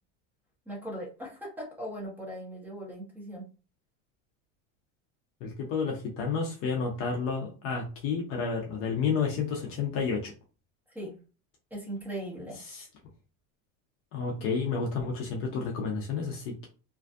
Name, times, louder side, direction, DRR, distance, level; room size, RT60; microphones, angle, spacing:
voice 1, 0.7-3.5 10.9-11.1 11.7-12.6, right 1 dB, 5° right, -4 dB, 0.7 m, -39 dB
voice 2, 5.4-10.3 12.7-12.8 14.1-16.7, left 5 dB, 40° left, 0 dB, 0.5 m, -31 dB
2.6 x 2.3 x 2.3 m, 0.34 s
supercardioid pair, 155°, 37 cm